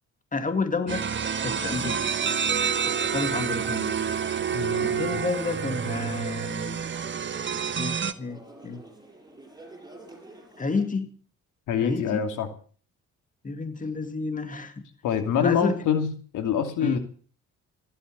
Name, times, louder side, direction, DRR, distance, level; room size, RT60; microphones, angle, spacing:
voice 1, 0.3-1.1 1.4-2.1 2.9-3.9 4.8-6.8 7.8-8.8 10.6-11.1 11.8-12.3 13.4-14.9 15.4-15.8 16.8-17.0, left 3 dB, 25° left, 8 dB, 2.5 m, -30 dB
sound 1, 0.9-8.1, right 7 dB, 40° right, 1.3 m, -28 dB
sound 2, 1.0-10.8, right 2 dB, 15° right, 6.0 m, -46 dB
voice 2, 4.5-5.2 11.7-12.5 15.0-16.1 16.3-17.0, left 8 dB, 85° left, 7 dB, 2.7 m, -25 dB
15.5 x 12.0 x 6.8 m, 0.43 s
cardioid pair, 90°, 30 cm